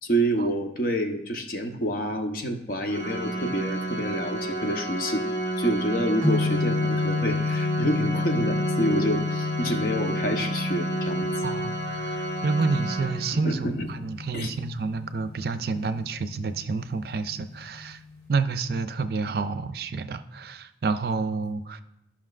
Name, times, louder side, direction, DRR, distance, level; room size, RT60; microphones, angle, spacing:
voice 1, 0.0-5.3 5.6-11.3 13.4-13.9 14.3-14.5, equal, 50° left, 4 dB, 0.8 m, -28 dB
Organ, 2.9-13.7, right 2 dB, 70° left, 1.3 m, -31 dB
sound 1, 6.2-18.3, left 4 dB, 15° left, 1.7 m, -31 dB
voice 2, 11.4-18.0 18.3-21.8, right 4 dB, 55° right, 11 dB, 0.4 m, -29 dB
13.0 x 5.7 x 2.4 m, 0.83 s
head